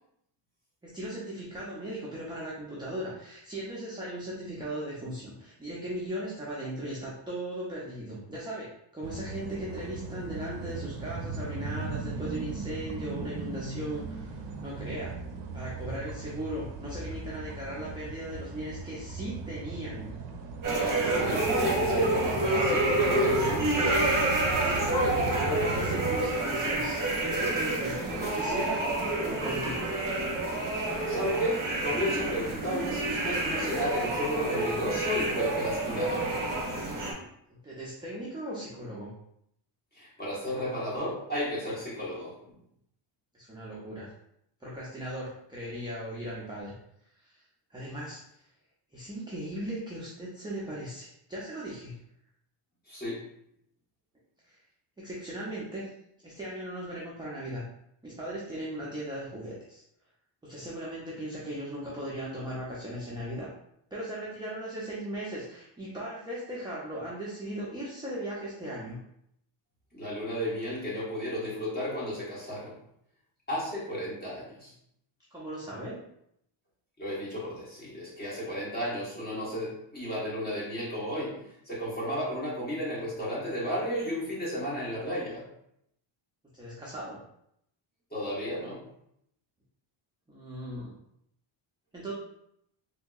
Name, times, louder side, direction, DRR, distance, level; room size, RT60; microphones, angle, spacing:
voice 1, 0.8-8.7 8.9-15.2 15.5-20.1 24.8-28.8 29.1-29.8 37.6-39.1 43.3-44.1 44.6-46.7 47.2-47.4 47.7-48.4 48.9-52.0 54.5-54.6 55.0-55.9 56.2-57.6 58.0-59.8 60.4-63.5 63.9-69.0 75.3-75.9 86.5-87.2 90.3-90.9 91.9-92.1, right 1 dB, 10° right, -6 dB, 0.3 m, -38 dB
sound 1, 9.0-26.2, right 3 dB, 60° right, 0.5 m, -38 dB
sound 2, 20.6-37.1, right 2 dB, 40° right, 0.9 m, -28 dB
voice 2, 21.1-23.7 31.1-36.3 39.9-42.3 52.9-53.2 69.9-72.7 73.5-74.7 77.0-85.4 88.1-88.8, equal, 20° left, -7 dB, 1.1 m, -33 dB
3.5 x 2.7 x 2.3 m, 0.75 s
cardioid pair, 165°, 48 cm